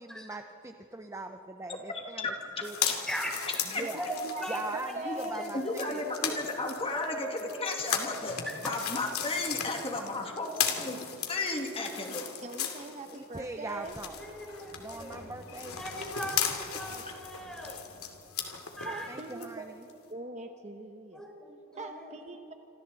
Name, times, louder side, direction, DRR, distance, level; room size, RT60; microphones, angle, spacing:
voice 1, 0.0-2.3 2.6-2.8 3.7-4.1 4.5-6.0 13.1-14.2 14.8-15.8 16.9-17.0 19.1-19.9, right 2 dB, 15° right, 6 dB, 0.7 m, -41 dB
voice 2, 1.9-2.3 2.8-2.9 3.7-3.9 5.0-5.1 5.5-8.4 8.6-11.0 11.3-12.3, left 2 dB, 25° left, 2 dB, 2.4 m, -34 dB
sound 1, 2.6-13.4 13.7-19.5 19.9-20.0, left 8 dB, 85° left, 2.7 m, -37 dB
voice 3, 3.8-4.4 4.7-5.4 12.4-14.0 18.8-19.7 20.1-21.2 21.7-22.5, right 3 dB, 30° right, 5 dB, 1.1 m, -42 dB
voice 4, 5.0-6.0 6.9-7.6 8.4-8.5 14.1-15.3 15.8-17.9 18.3-19.1 21.1-22.1, equal, 5° left, 0 dB, 4.1 m, -40 dB
Sliding door, 13.6-19.3, left 1 dB, 70° left, 3.0 m, -53 dB
27.5 x 26.5 x 4.2 m, 2.9 s
head